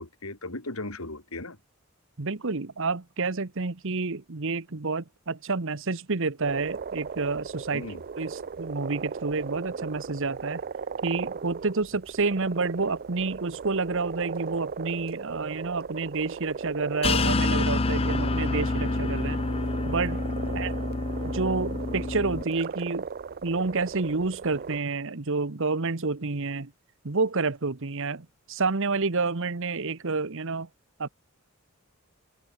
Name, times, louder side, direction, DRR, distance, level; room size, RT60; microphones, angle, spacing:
voice 1, 0.0-1.6 7.7-8.0 20.4-20.7, left 2 dB, 75° left, 4.3 m, -37 dB
voice 2, 2.2-7.9 8.2-10.6 11.0-19.4 19.8-20.2 20.5-20.7 21.2-23.1 23.4-26.7 27.0-30.7 31.0-31.1, right 3 dB, 60° right, 1.2 m, -29 dB
sound 1, 6.4-24.8, right 5 dB, 45° right, 0.5 m, -37 dB
sound 2, 17.0-22.4, left 3 dB, 25° left, 0.6 m, -27 dB
head